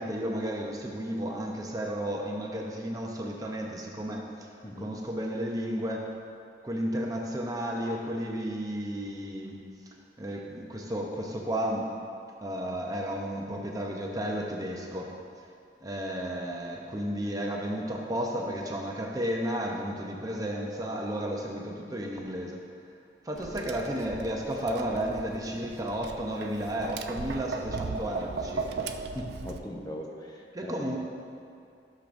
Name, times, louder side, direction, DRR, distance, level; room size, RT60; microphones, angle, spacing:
voice 1, 0.0-4.5 4.8-6.1 6.6-9.5 10.2-12.0 12.4-15.1 15.8-22.6 23.2-28.9 30.5-31.0, equal, 20° right, -1 dB, 0.7 m, -33 dB
Tap, 23.4-29.6, right 4 dB, 65° right, 0.4 m, -37 dB
voice 2, 29.1-30.9, equal, 20° left, -1 dB, 0.8 m, -39 dB
13.5 x 6.5 x 2.6 m, 2.4 s
head